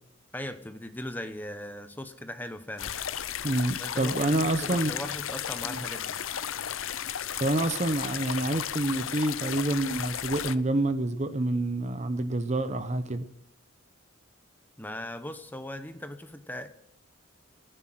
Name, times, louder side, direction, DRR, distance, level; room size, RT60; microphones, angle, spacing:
voice 1, 0.3-2.9 3.8-6.2 14.8-16.7, left 1 dB, 10° left, 0.9 m, -39 dB
sound 1, 2.8-10.6, left 9 dB, 75° left, 0.7 m, -34 dB
voice 2, 3.4-4.9 5.6-5.8 7.4-13.3, right 2 dB, 35° right, 0.8 m, -27 dB
15.5 x 10.0 x 7.7 m
head